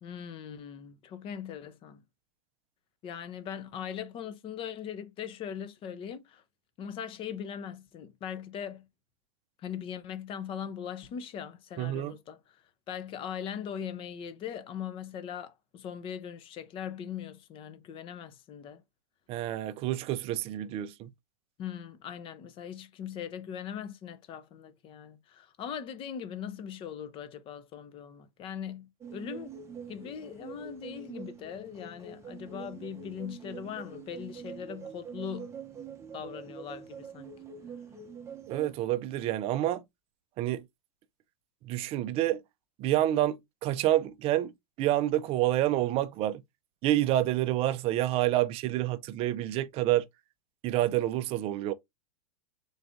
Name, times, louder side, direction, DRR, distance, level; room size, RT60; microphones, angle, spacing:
voice 1, 0.0-2.0 3.0-6.4 6.8-8.9 9.6-12.4 12.9-18.8 21.6-29.5 29.9-35.5 36.1-37.3, left 8 dB, 30° left, 0.6 m, -40 dB
voice 2, 11.8-12.2 19.3-21.1 38.5-39.8 40.4-40.6 41.6-42.4 42.8-44.5 44.8-46.4 46.8-50.0 50.6-51.7, right 14 dB, 30° right, 0.4 m, -28 dB
sound 1, 29.0-38.8, right 6 dB, 15° right, 0.8 m, -44 dB
3.9 x 2.5 x 3.5 m
hypercardioid pair, 130°, 19 cm